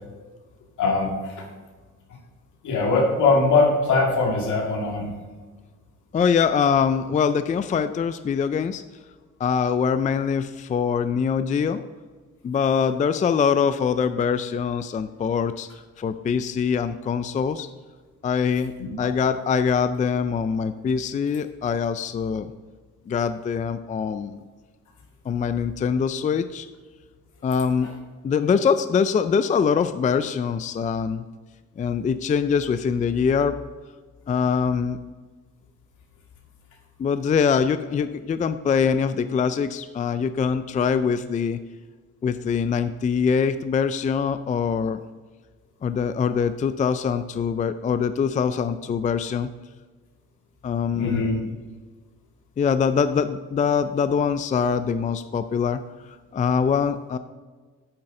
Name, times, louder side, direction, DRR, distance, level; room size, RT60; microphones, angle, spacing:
voice 1, 0.8-1.4 2.6-5.1 19.0-19.1 27.8-27.9 50.9-51.4, left 3 dB, 75° left, 0 dB, 2.1 m, -21 dB
voice 2, 6.1-8.8 9.4-11.8 12.4-15.7 16.0-17.7 18.2-22.5 23.1-24.4 25.3-26.7 27.4-27.9 28.2-31.2 31.8-33.5 34.3-35.0 37.0-41.6 42.2-45.0 45.8-49.5 50.6-51.5 52.6-55.8 56.3-57.2, left 6 dB, 25° left, 11 dB, 0.4 m, -23 dB
8.9 x 7.6 x 3.8 m, 1.4 s
cardioid pair, 90°, 30 cm